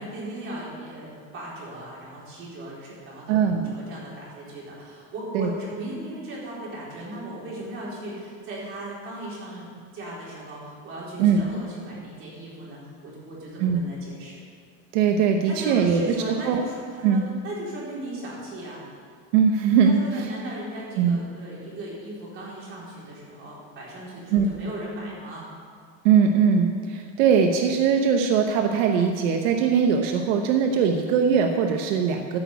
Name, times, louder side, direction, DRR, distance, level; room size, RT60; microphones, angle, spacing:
voice 1, 0.0-14.4 15.4-18.8 19.8-25.4, right 1 dB, 35° right, -5 dB, 4.1 m, -37 dB
voice 2, 3.3-3.6 5.3-5.5 11.2-11.4 13.6-13.8 14.9-16.0 16.3-16.6 17.0-17.2 19.3-20.3 21.0-21.2 24.3-24.5 26.0-32.4, right 6 dB, 85° right, 4 dB, 1.1 m, -21 dB
14.0 x 6.2 x 8.3 m, 2.1 s
cardioid pair, 170°, 36 cm